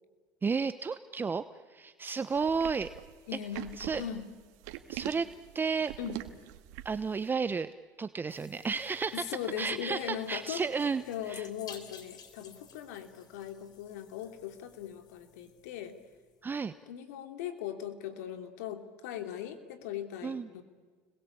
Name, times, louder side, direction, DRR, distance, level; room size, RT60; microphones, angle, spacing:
voice 1, 0.4-1.4 1.7-2.9 3.8-4.0 4.9-5.3 5.5-5.9 6.8-7.7 8.0-9.3 9.6-11.0 11.3-11.5 16.4-16.7 20.2-20.5, right 5 dB, 25° right, 12 dB, 1.0 m, -32 dB
sound 1, 2.4-7.1, right 15 dB, 80° right, 1.9 m, -42 dB
voice 2, 3.3-4.3 6.0-6.2 9.1-10.6 11.1-16.0 16.9-20.6, left 9 dB, 85° left, 8 dB, 2.9 m, -39 dB
sound 2, 8.3-16.4, left 7 dB, 50° left, 4.0 m, -55 dB
30.0 x 21.5 x 8.6 m, 1.5 s
supercardioid pair, 90°, 9 cm